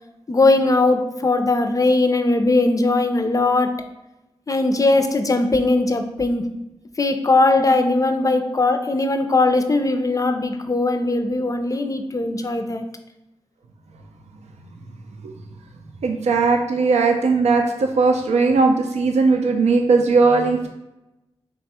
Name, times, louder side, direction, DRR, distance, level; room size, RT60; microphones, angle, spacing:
voice 1, 0.3-3.8 4.5-6.5 7.0-12.8, left 2 dB, 30° left, 7 dB, 0.4 m, -19 dB
voice 2, 16.0-20.7, right 4 dB, 80° right, 4 dB, 0.4 m, -18 dB
3.3 x 2.2 x 4.2 m, 0.95 s
cardioid pair, 40°, 11 cm